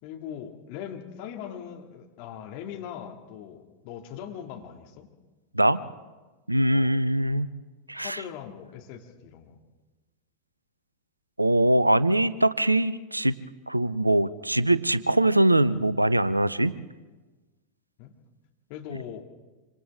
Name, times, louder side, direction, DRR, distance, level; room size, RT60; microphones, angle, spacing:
voice 1, 0.0-5.1 6.7-7.0 7.9-9.6 18.0-18.1 18.7-19.2, left 9 dB, 45° left, 2 dB, 2.5 m, -40 dB
voice 2, 6.5-7.5 7.9-8.2 11.4-13.3 13.7-16.7, right 1 dB, 85° right, 17 dB, 0.6 m, -22 dB
27.0 x 26.0 x 3.7 m, 1.2 s
figure-of-eight pair, 90°, 0 cm